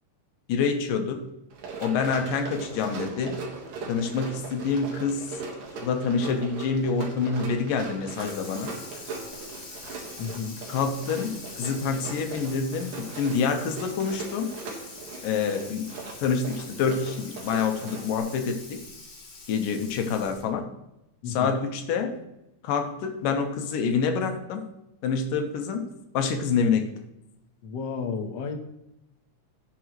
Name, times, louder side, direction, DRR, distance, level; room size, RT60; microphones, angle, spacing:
voice 1, 0.5-1.2 1.8-3.4 3.9-5.4 5.8-8.7 10.7-14.5 15.2-15.9 16.2-18.8 19.5-20.6 21.3-22.2 22.6-24.7 25.0-25.9 26.1-26.9, left 5 dB, 90° left, 5 dB, 2.7 m, -27 dB
Run, 1.5-18.2, right 3 dB, 85° right, 3.4 m, -40 dB
Water tap faucet / Sink (filling or washing), 8.1-20.6, left 3 dB, 35° left, 2.3 m, -44 dB
voice 2, 10.2-10.6 21.2-21.6 27.6-28.6, left 5 dB, 65° left, 3 dB, 1.1 m, -32 dB
17.5 x 6.2 x 3.1 m, 0.89 s
omnidirectional pair, 3.8 m